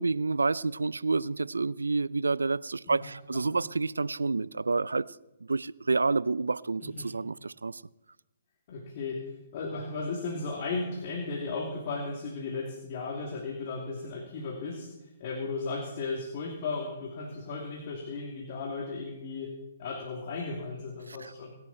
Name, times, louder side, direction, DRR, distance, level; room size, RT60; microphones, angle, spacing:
voice 1, 0.0-5.1 5.5-7.8 21.2-21.3, right 3 dB, 90° right, 0.5 m, -29 dB
voice 2, 2.9-3.6 7.0-7.1 8.7-21.5, left 3 dB, 45° left, 3.0 m, -36 dB
25.5 x 11.0 x 4.4 m
hypercardioid pair, 135°, 0 cm